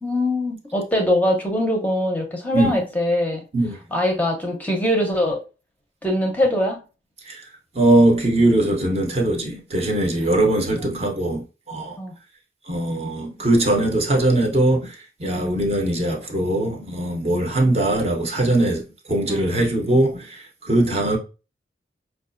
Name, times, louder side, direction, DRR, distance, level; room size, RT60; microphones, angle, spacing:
voice 1, 0.0-3.4 3.9-5.4 6.0-6.8 12.0-12.1 15.3-15.5 19.3-19.5 20.8-21.2, left 1 dB, 10° left, 0.6 m, -23 dB
voice 2, 7.7-12.0 12.7-21.2, right 1 dB, 35° right, 0.7 m, -21 dB
4.7 x 2.3 x 2.5 m
head